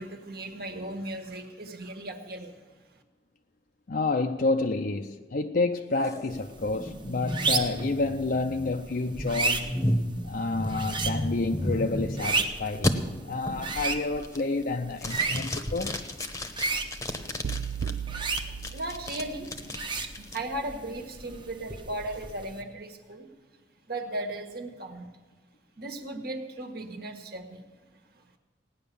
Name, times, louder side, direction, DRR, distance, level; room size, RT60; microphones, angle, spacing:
voice 1, 0.0-2.6 2.9-3.0 18.4-23.3 23.8-25.1 25.8-27.6 28.1-28.2, right 1 dB, 60° right, 1.6 m, -37 dB
voice 2, 3.9-9.8 10.2-16.0, left 3 dB, 50° left, 0.6 m, -29 dB
sound 1, 6.0-12.4 12.8-12.9 13.5-13.8 14.2-14.6 15.0-17.9 18.4-20.4, left 1 dB, 15° left, 0.9 m, -33 dB
sound 2, 6.3-22.6, right 4 dB, 25° right, 1.0 m, -34 dB
sound 3, 17.4-19.7, right 7 dB, 85° right, 0.4 m, -36 dB
17.0 x 10.0 x 7.0 m
head